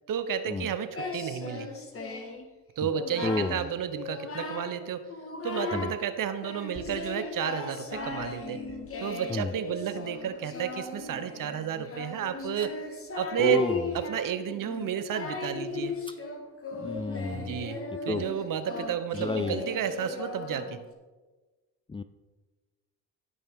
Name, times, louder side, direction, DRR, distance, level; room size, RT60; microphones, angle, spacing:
voice 1, 0.1-1.7 2.8-5.1 5.4-8.6 9.0-12.7 13.1-13.7 13.9-15.9 17.3-17.8 18.1-20.8, right 9 dB, 55° right, 11 dB, 1.0 m, -31 dB
Singing, 0.9-2.4 2.8-3.6 4.0-4.8 5.1-6.0 6.4-20.9, left 3 dB, 35° left, 1.7 m, -37 dB
voice 2, 3.2-3.6 5.7-5.9 9.3-9.5 13.4-13.9 16.8-17.6 18.1-18.2 19.1-19.6 21.9-22.0, left 3 dB, 15° left, 11 dB, 0.4 m, -30 dB
16.5 x 5.5 x 3.7 m, 1.3 s
supercardioid pair, 60°, 40 cm